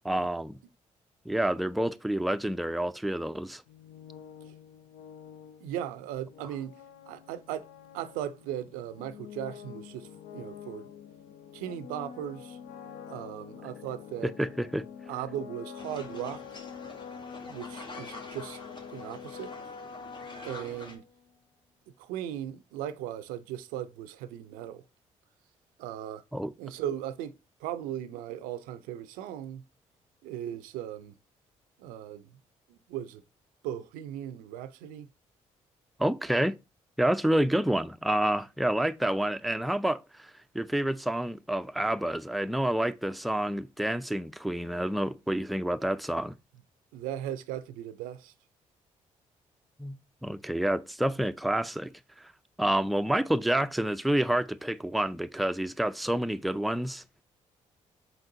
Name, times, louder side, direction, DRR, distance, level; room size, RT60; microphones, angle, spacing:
voice 1, 0.0-0.6 1.3-3.6 14.2-14.9 26.3-26.5 36.0-36.6 37.0-46.3 49.8-51.9 52.2-52.3 52.6-57.0, right 1 dB, ahead, 0.3 m, -28 dB
sound 1, 3.7-21.3, left 7 dB, 80° left, 0.5 m, -46 dB
voice 2, 5.6-6.7 7.1-7.7 7.9-10.9 11.5-12.6 13.1-14.3 15.1-16.4 17.4-18.6 18.9-19.5 20.4-21.0 22.0-24.8 25.8-26.2 26.6-27.3 27.6-29.6 30.2-31.1 31.8-32.3 32.7-33.2 33.6-35.1 46.9-48.3, right 11 dB, 90° right, 0.4 m, -37 dB
sound 2, 15.8-21.0, left 2 dB, 35° left, 1.2 m, -46 dB
4.5 x 3.9 x 2.7 m
supercardioid pair, 55°, 14 cm